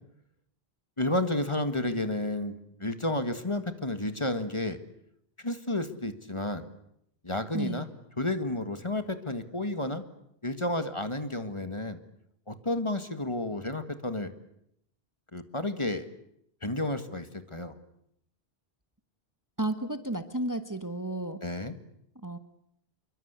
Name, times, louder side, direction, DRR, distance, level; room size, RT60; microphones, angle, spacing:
voice 1, 1.0-2.5 2.8-4.8 5.4-6.7 7.2-7.9 8.2-10.0 10.4-12.0 12.5-14.3 15.3-16.0 16.6-17.7 21.4-21.7, left 1 dB, 30° left, 10 dB, 1.9 m, -31 dB
voice 2, 7.5-7.8 19.6-21.4 22.2-22.4, right 1 dB, 20° right, 10 dB, 1.3 m, -32 dB
27.0 x 24.0 x 8.2 m, 0.75 s
omnidirectional pair, 1.0 m